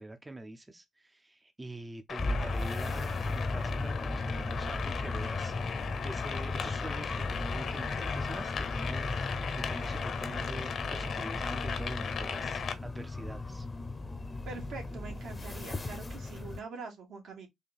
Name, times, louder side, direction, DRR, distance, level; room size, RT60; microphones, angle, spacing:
voice 1, 0.0-13.7, right 2 dB, 15° right, 0.5 m, -45 dB
sound 1, 2.1-12.7, left 6 dB, 55° left, 0.8 m, -37 dB
sound 2, 2.2-16.6, left 2 dB, 25° left, 0.7 m, -36 dB
voice 2, 14.5-17.5, right 4 dB, 75° right, 1.8 m, -44 dB
4.0 x 2.7 x 3.5 m
cardioid pair, 90°, 0 cm